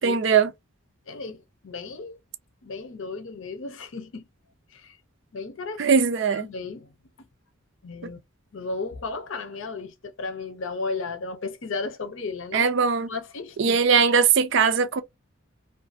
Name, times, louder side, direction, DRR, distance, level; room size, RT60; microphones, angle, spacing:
voice 1, 0.0-0.5 5.8-6.5 8.0-8.1 12.5-13.1 13.6-15.0, right 6 dB, 55° right, 0.4 m, -20 dB
voice 2, 1.1-2.2 2.6-4.3 4.7-5.0 5.3-5.9 6.4-6.9 7.8-8.2 8.5-12.6 13.1-13.8, left 3 dB, 65° left, 0.6 m, -34 dB
2.5 x 2.3 x 2.5 m
head